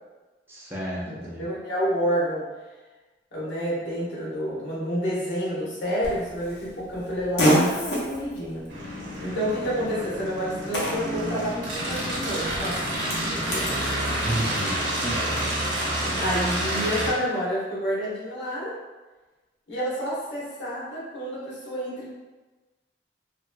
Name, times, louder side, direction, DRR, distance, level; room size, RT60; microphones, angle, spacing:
voice 1, 0.5-1.4 14.1-14.8 15.0-15.2, right 1 dB, 15° right, -6 dB, 0.5 m, -32 dB
voice 2, 1.0-2.5 3.3-8.7 9.2-12.9 13.2-13.8 16.0-18.7 19.7-22.1, equal, 90° left, -7 dB, 1.2 m, -29 dB
Fart, 6.0-13.8, equal, 70° left, 0.8 m, -30 dB
sound 1, 8.7-17.1, right 1 dB, 85° right, 0.9 m, -29 dB
3.0 x 2.7 x 2.2 m, 1.2 s
head